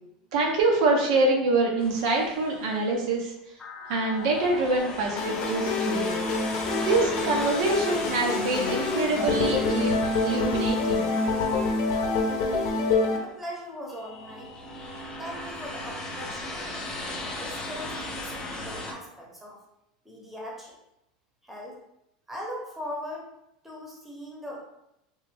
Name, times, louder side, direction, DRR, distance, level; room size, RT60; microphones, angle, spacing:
voice 1, 0.3-3.3 3.9-6.2 6.8-11.1, right 3 dB, 75° right, 0 dB, 0.7 m, -25 dB
sound 1, 1.8-2.8 3.6-13.1 13.9-18.9, left 2 dB, 25° left, 0.5 m, -38 dB
sound 2, 5.2-13.2, left 3 dB, 60° left, 0.6 m, -26 dB
voice 2, 13.1-14.5 15.2-16.8 17.2-19.6 20.0-20.7 21.4-21.8 22.3-23.2 23.6-24.6, equal, 5° right, -3 dB, 0.8 m, -40 dB
3.0 x 2.1 x 3.3 m, 0.85 s
supercardioid pair, 125°, 3 cm